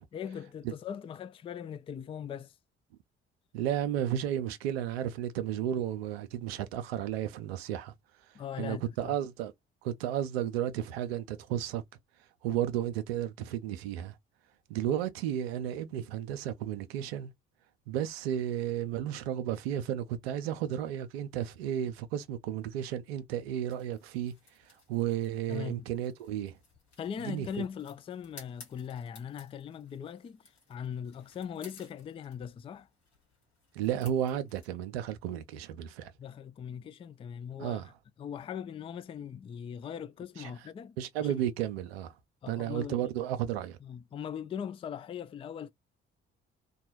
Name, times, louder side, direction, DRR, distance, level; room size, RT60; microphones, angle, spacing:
voice 1, 0.1-2.6 8.3-9.1 25.5-25.9 27.0-32.9 36.2-37.8 38.2-41.3 42.4-43.1 43.8-45.7, left 8 dB, 20° left, 0.3 m, -40 dB
voice 2, 3.5-7.9 8.3-9.5 9.8-11.8 12.4-14.2 14.7-17.3 17.9-24.3 24.6-26.6 27.3-27.5 33.7-36.1 37.6-37.9 40.4-40.5 41.0-42.2 42.5-43.8, right 10 dB, 70° right, 0.5 m, -33 dB
sound 1, 23.7-34.7, left 3 dB, 85° left, 1.1 m, -58 dB
3.0 x 2.2 x 3.0 m
figure-of-eight pair, 45°, 32 cm